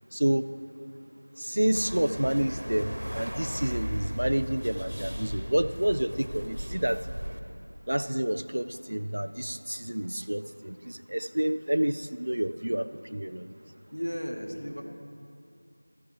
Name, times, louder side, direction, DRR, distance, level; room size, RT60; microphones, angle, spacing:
voice 1, 0.1-0.5 1.4-7.0 7.9-13.5, right 1 dB, 40° right, 12 dB, 0.4 m, -29 dB
sound 1, 1.7-7.4, equal, 65° right, 1.4 m, -36 dB
voice 2, 13.9-14.8, equal, 75° left, 1 dB, 2.1 m, -34 dB
16.5 x 14.5 x 3.4 m, 2.5 s
figure-of-eight pair, 180°, 0 cm